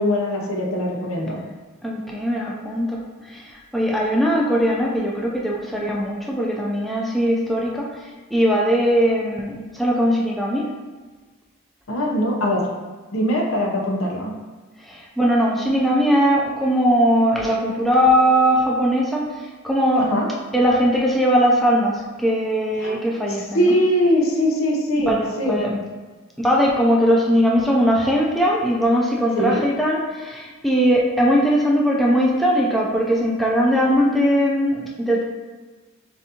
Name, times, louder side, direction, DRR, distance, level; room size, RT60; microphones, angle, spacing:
voice 1, 0.0-1.4 11.9-12.7 13.1-14.3 20.0-20.3 22.8-23.0 23.5-25.6 29.4-29.6, equal, 85° left, -1 dB, 0.8 m, -21 dB
voice 2, 1.8-10.7 14.8-20.1 20.5-23.7 25.0-25.8 26.4-35.2, equal, ahead, -3 dB, 0.4 m, -20 dB
6.9 x 2.6 x 2.9 m, 1.3 s
head